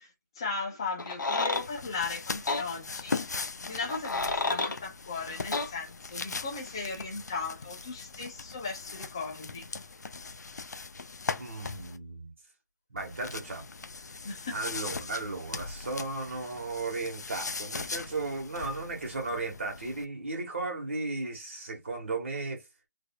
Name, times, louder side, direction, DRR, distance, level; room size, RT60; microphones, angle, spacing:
voice 1, 0.0-3.2 3.6-9.7 14.2-14.6, left 4 dB, 15° left, 0.6 m, -37 dB
sound 1, 1.0-1.7 2.5-2.6 3.8-4.8 5.5-5.7, left 3 dB, 90° left, 0.9 m, -30 dB
sound 2, 1.5-12.0 13.0-20.0, left 4 dB, 65° left, 0.5 m, -40 dB
voice 2, 11.4-12.3 12.9-13.7 14.5-22.6, right 3 dB, 40° right, 1.7 m, -35 dB
3.9 x 3.4 x 2.3 m
hypercardioid pair, 180°, 10 cm